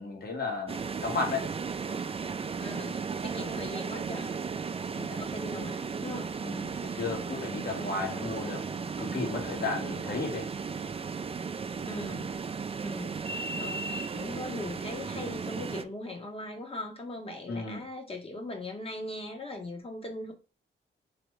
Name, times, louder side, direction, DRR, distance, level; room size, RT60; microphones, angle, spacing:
voice 1, 0.0-1.5 6.4-10.5 17.5-17.8, left 3 dB, 55° left, 1.5 m, -34 dB
sound 1, 0.7-15.8, right 5 dB, 30° right, 0.4 m, -35 dB
voice 2, 2.6-4.4 4.9-6.3 11.9-12.3 12.8-13.2 13.6-20.3, left 2 dB, 30° left, 1.1 m, -40 dB
3.7 x 3.0 x 3.2 m
cardioid pair, 85°, 19 cm